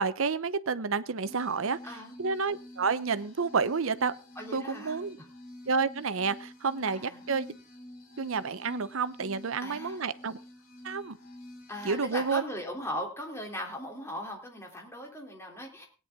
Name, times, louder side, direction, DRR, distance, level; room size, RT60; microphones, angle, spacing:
voice 1, 0.0-4.1 4.5-5.2 5.7-7.6 8.2-10.4 10.8-11.2 11.8-12.4, right 5 dB, 70° right, 14 dB, 0.8 m, -30 dB
sound 1, 1.3-12.3, left 1 dB, 80° left, 3.7 m, -48 dB
voice 2, 1.8-2.1 4.3-5.3 6.9-7.2 9.6-10.0 11.7-15.9, left 1 dB, 15° left, 1 dB, 3.3 m, -39 dB
17.5 x 9.8 x 3.7 m, 0.33 s
head